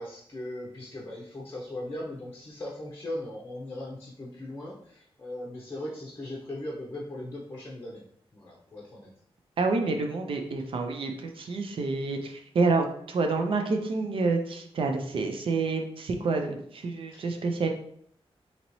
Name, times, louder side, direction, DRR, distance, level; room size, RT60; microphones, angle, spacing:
voice 1, 0.0-8.0 8.3-9.1 17.1-17.3, left 1 dB, 25° left, -3 dB, 0.7 m, -39 dB
voice 2, 9.6-17.7, right 3 dB, 60° right, 4 dB, 0.5 m, -28 dB
4.0 x 2.9 x 3.0 m, 0.66 s
wide cardioid pair, 135°, 10 cm